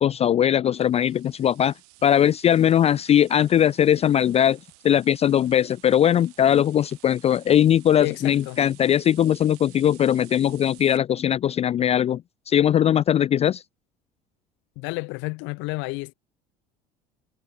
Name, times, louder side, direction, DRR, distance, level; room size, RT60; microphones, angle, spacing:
voice 1, 0.0-1.7 2.0-4.6 4.8-12.2 12.5-13.6, left 10 dB, 30° left, 0.4 m, -20 dB
sound 1, 0.7-11.0, right 27 dB, 70° right, 5.7 m, -52 dB
voice 2, 8.0-8.6 14.8-16.1, left 26 dB, 65° left, 2.1 m, -31 dB
hypercardioid pair, 65°, 21 cm